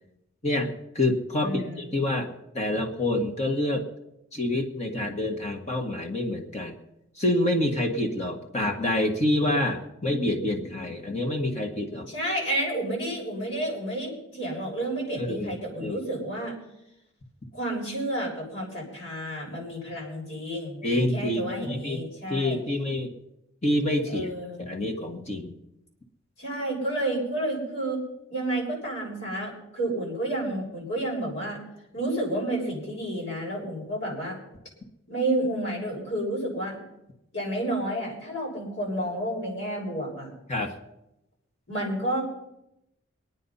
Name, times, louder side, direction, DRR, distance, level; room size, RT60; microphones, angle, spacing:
voice 1, 0.4-2.3 2.5-3.9 4.3-6.8 7.2-12.1 15.2-16.0 20.8-22.0 22.3-23.2 23.6-24.3 24.6-25.5 40.5-40.7, left 1 dB, 35° left, 2 dB, 1.6 m, -27 dB
voice 2, 1.4-1.9 12.1-16.5 17.5-22.6 24.1-24.7 26.4-28.0 28.3-31.6 31.9-34.4 35.1-36.8 37.3-40.3 41.7-42.2, right 1 dB, 70° left, -3 dB, 7.0 m, -30 dB
23.0 x 9.5 x 5.6 m, 0.86 s
head